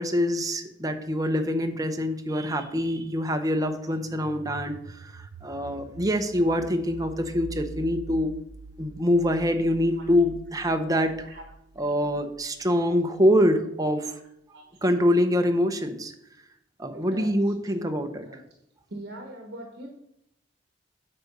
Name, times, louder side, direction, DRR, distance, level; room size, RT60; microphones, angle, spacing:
voice 1, 0.0-8.4 8.8-11.2 11.8-14.1 14.8-16.1 16.8-18.2, equal, 20° right, 7 dB, 0.8 m, -25 dB
sound 1, 3.9-12.6, right 3 dB, 90° right, 0.6 m, -44 dB
voice 2, 14.5-14.8 16.9-17.3 17.7-18.4 18.9-19.9, right 1 dB, 60° right, 2 dB, 1.2 m, -42 dB
8.6 x 4.9 x 6.7 m, 0.79 s
head